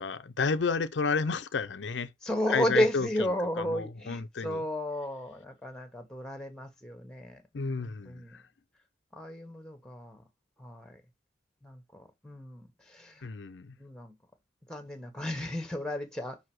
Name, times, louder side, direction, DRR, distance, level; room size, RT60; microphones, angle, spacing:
voice 1, 0.0-2.1 2.5-3.1 3.6-4.6 7.5-8.4 13.2-13.7, left 4 dB, 80° left, 0.6 m, -31 dB
voice 2, 2.2-8.4 9.1-10.2 10.6-11.0 11.6-13.3 13.8-14.1 14.7-16.4, equal, 5° left, 1.3 m, -33 dB
5.5 x 4.8 x 6.1 m
head